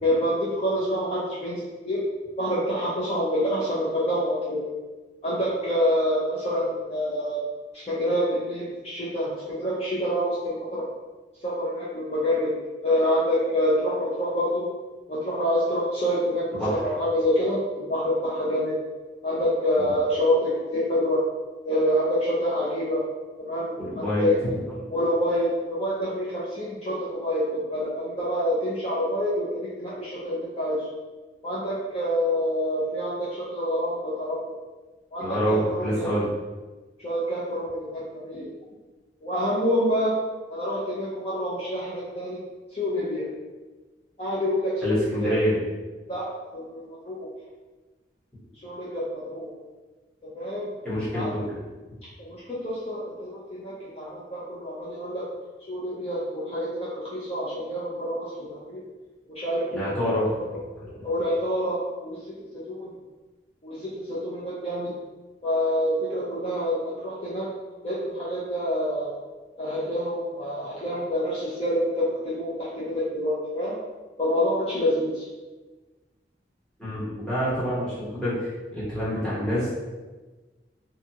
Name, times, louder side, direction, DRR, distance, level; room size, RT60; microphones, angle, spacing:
voice 1, 0.0-2.0 2.4-4.6 5.2-7.4 7.7-10.9 11.4-12.5 12.8-14.7 15.1-18.8 19.2-21.2 21.6-23.0 23.4-24.3 24.9-27.4 27.7-30.8 31.4-34.4 35.1-36.1 37.0-38.5 39.2-40.1 40.5-42.4 42.7-43.2 44.2-45.3 46.1-46.3 46.5-47.3 48.6-49.5 50.3-50.7 51.1-51.3 52.2-55.2 55.7-58.8 59.3-60.1 61.0-62.2 62.7-62.9 63.6-64.9 65.4-67.5 67.8-69.2 69.6-73.7 74.2-75.3, equal, 35° left, -8 dB, 0.5 m, -27 dB
voice 2, 23.8-24.3 35.2-36.3 44.8-45.6 50.8-51.5 59.7-60.3 60.8-60.9 76.8-79.7, equal, 5° left, -11 dB, 1.0 m, -27 dB
2.7 x 2.3 x 2.7 m, 1.2 s
head